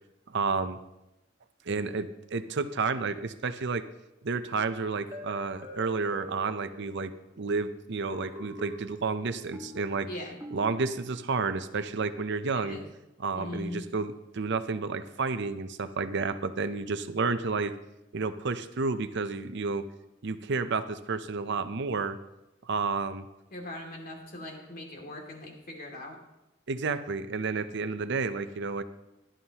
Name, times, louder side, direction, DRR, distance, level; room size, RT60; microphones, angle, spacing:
voice 1, 0.3-0.8 1.7-3.8 4.2-10.1 10.5-12.8 13.2-17.7 18.1-19.8 20.2-22.2 22.6-23.3 26.7-28.8, right 4 dB, 60° right, 11 dB, 0.7 m, -31 dB
sound 1, 5.1-7.3 8.1-11.2, equal, 15° right, 1.7 m, -45 dB
voice 2, 10.0-10.4 12.5-12.9 13.3-13.9 23.5-26.2, left 1 dB, 50° left, 0 dB, 2.6 m, -40 dB
16.5 x 11.5 x 3.0 m, 0.93 s
head